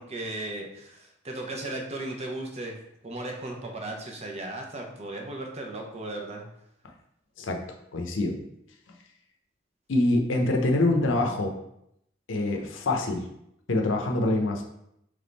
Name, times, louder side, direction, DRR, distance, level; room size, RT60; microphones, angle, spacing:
voice 1, 0.0-2.8 3.0-6.5, right 2 dB, 35° right, 1 dB, 0.8 m, -36 dB
voice 2, 7.9-8.4 9.9-11.5 12.3-13.3 13.7-14.6, left 2 dB, 75° left, 3 dB, 0.7 m, -25 dB
3.6 x 3.3 x 4.0 m, 0.77 s
head